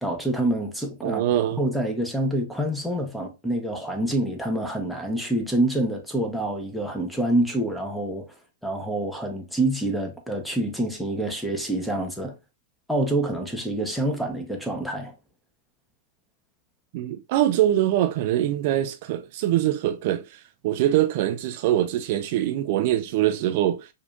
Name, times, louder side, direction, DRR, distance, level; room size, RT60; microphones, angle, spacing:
voice 1, 0.0-1.2 1.6-8.3 8.6-12.3 12.9-15.1, right 1 dB, ahead, 0.9 m, -26 dB
voice 2, 1.0-1.6 16.9-23.9, right 12 dB, 55° right, 0.3 m, -23 dB
4.7 x 2.6 x 2.5 m
hypercardioid pair, 125°, 0 cm